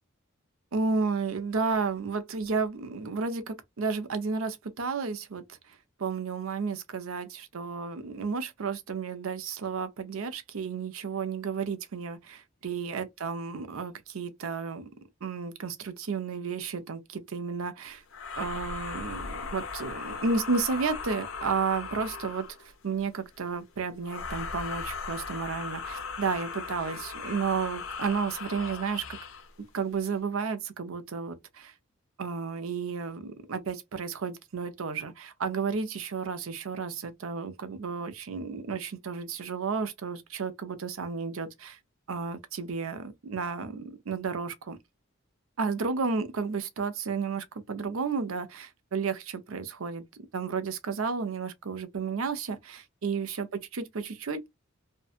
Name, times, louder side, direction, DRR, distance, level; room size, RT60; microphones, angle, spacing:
voice 1, 0.7-5.7 6.0-14.9 15.2-18.0 18.4-29.0 29.7-31.7 32.2-41.8 42.1-44.8 45.6-50.0 50.3-54.5, right 5 dB, 90° right, 0.6 m, -32 dB
sound 1, 18.1-22.7 24.0-29.5, left 5 dB, 75° left, 0.7 m, -38 dB
2.7 x 2.2 x 2.4 m
head